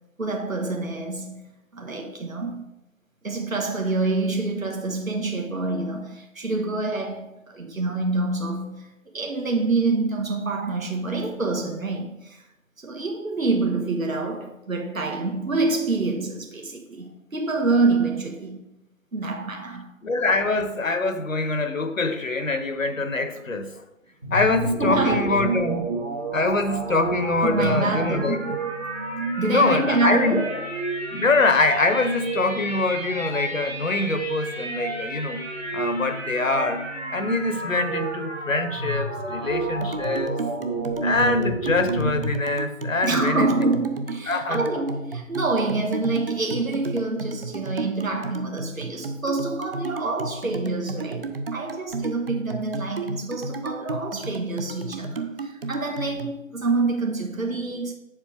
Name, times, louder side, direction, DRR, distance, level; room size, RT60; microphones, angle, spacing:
voice 1, 0.2-1.4 1.7-2.7 3.2-8.9 9.1-12.4 12.8-18.6 19.1-19.9 24.8-25.4 27.4-29.0 29.4-30.6 39.4-39.6 43.0-57.9, right 3 dB, 85° right, 1.4 m, -26 dB
voice 2, 20.0-23.8 24.3-25.9 26.3-28.4 29.5-30.4 31.1-35.4 35.7-36.8 37.1-40.3 41.0-43.5 44.3-44.9, left 3 dB, 75° left, 1.2 m, -24 dB
sound 1, 24.2-42.4, right 2 dB, 10° right, 0.8 m, -30 dB
sound 2, 39.8-56.3, right 3 dB, 45° right, 0.7 m, -33 dB
8.4 x 7.2 x 3.6 m
figure-of-eight pair, 155°, 40 cm